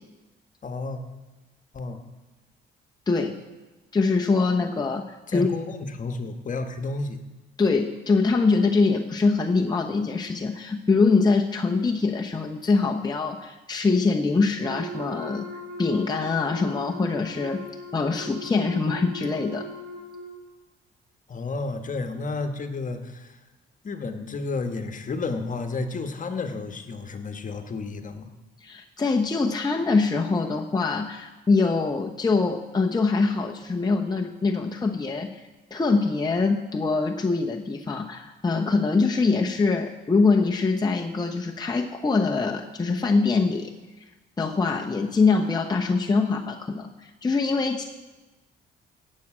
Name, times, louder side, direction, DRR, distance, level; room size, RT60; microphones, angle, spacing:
voice 1, 0.6-1.0 1.7-2.0 5.3-7.2 21.3-23.4 23.8-28.3, left 3 dB, 40° left, 7 dB, 1.4 m, -31 dB
voice 2, 3.1-3.4 3.9-5.5 7.6-15.4 15.8-17.6 17.9-19.7 28.6-35.4 35.7-43.7 44.4-47.8, left 4 dB, 20° left, 1 dB, 0.9 m, -23 dB
Wind instrument woodwind instrument, 14.6-20.4, left 1 dB, 60° right, 3.3 m, -39 dB
16.5 x 7.6 x 6.1 m, 1.1 s
cardioid pair, 90°, 20 cm